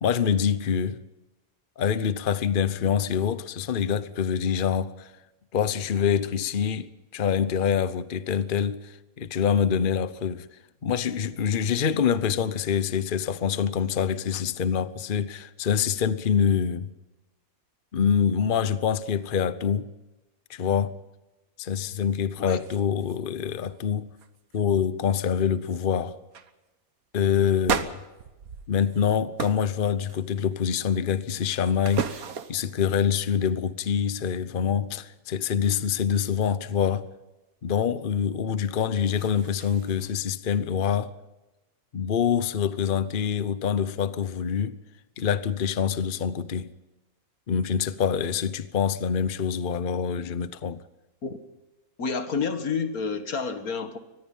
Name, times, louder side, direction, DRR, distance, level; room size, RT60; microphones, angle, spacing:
voice 1, 0.0-1.0 1.8-5.1 5.5-10.5 10.8-16.9 17.9-19.9 20.5-20.9 21.6-24.1 24.5-26.2 27.1-28.0 28.7-32.2 32.5-37.1 37.6-41.1 41.9-44.8 45.2-46.7 47.5-50.8, left 7 dB, 40° left, 0.9 m, -25 dB
sound 1, 21.9-22.0 22.4-23.2 23.4-23.8 24.2-24.6 25.2-25.3 25.6-25.9 26.3-26.5 27.6-29.0 29.4-29.7 30.1-30.6 31.1-32.7 38.7-40.1, right 7 dB, 80° right, 1.7 m, -34 dB
voice 2, 52.0-54.0, left 5 dB, 90° left, 2.2 m, -29 dB
24.5 x 19.5 x 5.6 m
omnidirectional pair, 1.5 m